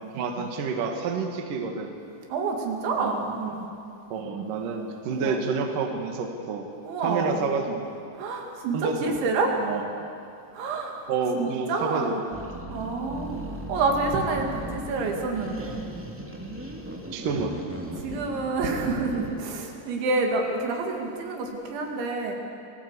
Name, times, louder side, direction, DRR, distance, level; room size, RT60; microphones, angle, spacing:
voice 1, 0.1-1.9 2.9-3.2 4.1-6.7 7.0-7.9 8.7-9.2 9.6-9.8 11.1-12.3 17.1-17.6, right 4 dB, 55° right, 3 dB, 3.0 m, -29 dB
voice 2, 2.3-3.7 5.0-5.4 6.9-7.4 8.2-9.6 10.5-11.0 11.3-12.2 12.7-13.4 13.7-15.9 18.0-22.3, right 3 dB, 80° right, 1 dB, 4.8 m, -28 dB
sound 1, 12.3-19.5, right 1 dB, 5° right, 1.0 m, -37 dB
27.5 x 19.0 x 8.4 m, 2.6 s
omnidirectional pair, 5.2 m